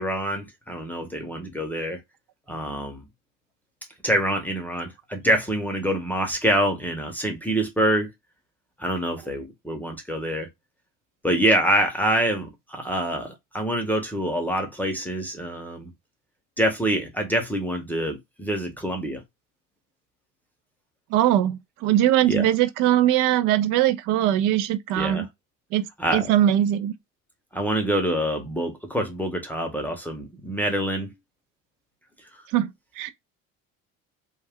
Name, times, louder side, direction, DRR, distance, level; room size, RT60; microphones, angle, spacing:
voice 1, 0.0-2.0 2.5-3.0 4.0-8.1 8.8-10.5 11.2-15.9 16.6-19.2 22.3-22.4 24.9-25.3 26.0-26.3 27.5-31.1, right 1 dB, 5° left, 0.7 m, -26 dB
voice 2, 21.1-25.3 25.7-25.9 26.1-26.9 32.5-32.7 33.0-33.1, right 12 dB, 65° right, 0.5 m, -21 dB
2.3 x 2.1 x 3.4 m
supercardioid pair, 105°, 35 cm